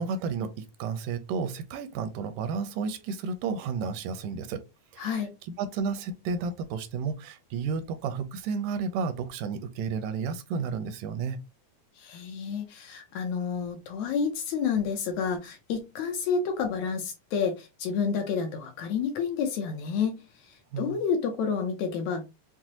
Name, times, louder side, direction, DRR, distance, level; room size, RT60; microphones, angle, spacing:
voice 1, 0.0-4.6 4.9-5.1 5.6-11.4 20.7-21.0, right 5 dB, 85° right, 2.1 m, -32 dB
voice 2, 5.0-5.3 12.0-20.1 20.8-22.3, left 6 dB, 75° left, 1.8 m, -29 dB
6.0 x 2.1 x 2.8 m
omnidirectional pair, 3.7 m